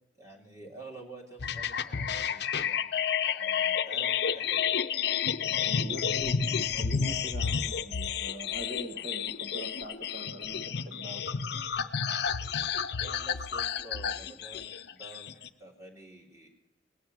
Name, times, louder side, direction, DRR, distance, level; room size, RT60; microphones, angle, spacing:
voice 1, 0.2-2.8 3.2-4.7 13.0-16.5, right 2 dB, 15° right, 0 dB, 2.8 m, -49 dB
sound 1, 1.4-15.5, left 7 dB, 60° left, 0.6 m, -31 dB
voice 2, 5.6-11.4, right 1 dB, 45° right, 3 dB, 1.5 m, -42 dB
19.0 x 7.0 x 9.3 m, 0.99 s
head